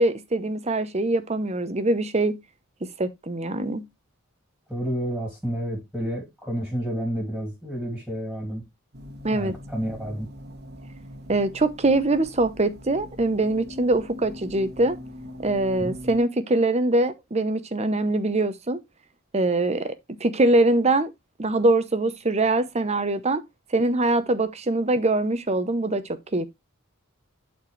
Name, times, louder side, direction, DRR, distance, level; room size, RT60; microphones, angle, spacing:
voice 1, 0.0-2.4 3.0-3.8 9.2-9.5 11.3-15.0 15.4-18.8 19.3-19.9 20.2-21.1 21.4-23.4 23.7-26.0 26.3-26.5, right 2 dB, 30° right, 0.8 m, -23 dB
voice 2, 4.7-8.6 9.3-10.3 15.8-15.9, equal, ahead, 2.8 m, -30 dB
sound 1, 8.9-16.2, left 1 dB, 50° right, 1.4 m, -42 dB
11.5 x 4.4 x 3.2 m
head